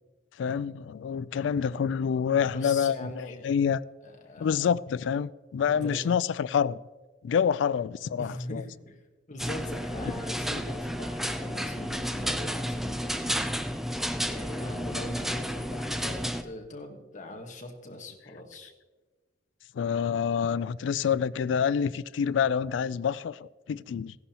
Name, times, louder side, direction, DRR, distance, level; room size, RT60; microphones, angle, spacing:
voice 1, 0.4-3.8 4.4-6.8 7.2-8.6 19.7-24.2, left 7 dB, 80° left, 0.3 m, -27 dB
voice 2, 2.5-3.5 4.0-4.6 5.7-6.2 8.2-9.0 9.3-13.5 14.2-18.7, left 1 dB, 45° left, 1.4 m, -41 dB
sound 1, 9.4-16.4, equal, ahead, 0.5 m, -32 dB
15.5 x 11.0 x 2.9 m
head